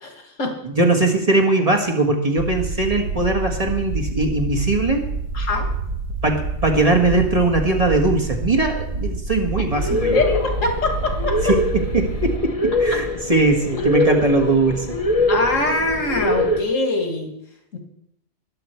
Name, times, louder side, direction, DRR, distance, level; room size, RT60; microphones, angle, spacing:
voice 1, 0.0-0.6 5.3-5.7 10.1-11.5 12.9-13.0 15.3-17.3 17.7-17.8, left 2 dB, 80° left, 3 dB, 2.5 m, -23 dB
voice 2, 0.6-5.1 6.2-10.2 11.4-15.0, right 2 dB, 30° right, 2 dB, 1.7 m, -20 dB
sound 1, 2.4-12.4, right 3 dB, 90° right, 1.8 m, -27 dB
sound 2, 9.7-16.6, left 1 dB, 30° left, 1.0 m, -23 dB
20.5 x 7.8 x 4.5 m, 0.81 s
omnidirectional pair, 1.3 m